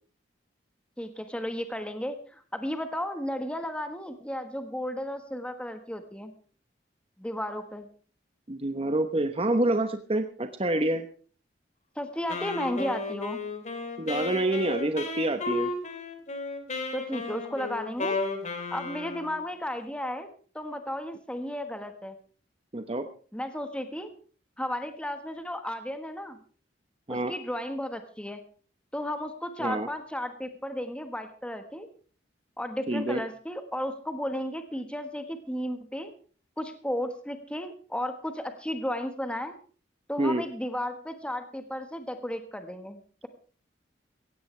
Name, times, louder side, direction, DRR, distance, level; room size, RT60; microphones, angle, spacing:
voice 1, 1.0-6.3 7.2-7.9 11.9-13.4 16.9-18.2 18.7-20.3 20.5-22.1 23.3-24.1 24.6-26.4 27.1-28.4 28.9-31.9 32.6-36.1 36.6-39.5 40.1-43.3, equal, 5° left, 7 dB, 1.4 m, -34 dB
voice 2, 8.5-11.1 14.0-15.7 22.7-23.1 27.1-27.3 29.6-29.9 32.9-33.2 40.2-40.4, right 1 dB, 30° right, 8 dB, 1.0 m, -27 dB
Wind instrument woodwind instrument, 12.3-19.4, left 3 dB, 40° left, 3.0 m, -34 dB
17.0 x 16.0 x 3.3 m, 0.40 s
head